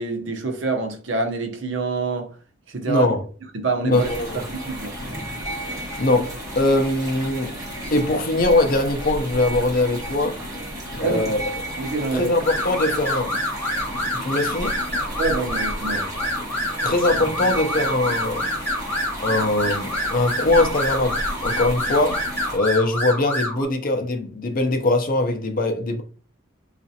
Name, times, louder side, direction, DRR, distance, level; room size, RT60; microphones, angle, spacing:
voice 1, 0.0-2.3 2.7-3.1 3.5-4.1 4.5-4.9 11.0-11.4 11.8-12.3 15.2-16.2, right 3 dB, 65° right, 0.7 m, -26 dB
voice 2, 2.9-3.2 3.8-4.4 6.0-7.6 7.9-10.4 11.0-11.4 12.1-13.3 14.1-14.8 16.8-18.4 19.2-22.2 22.5-26.0, left 2 dB, 45° left, 0.5 m, -21 dB
sound 1, 3.9-22.6, equal, 20° right, 1.2 m, -32 dB
sound 2, 12.4-23.6, left 1 dB, 10° left, 1.0 m, -27 dB
4.0 x 2.4 x 2.7 m
head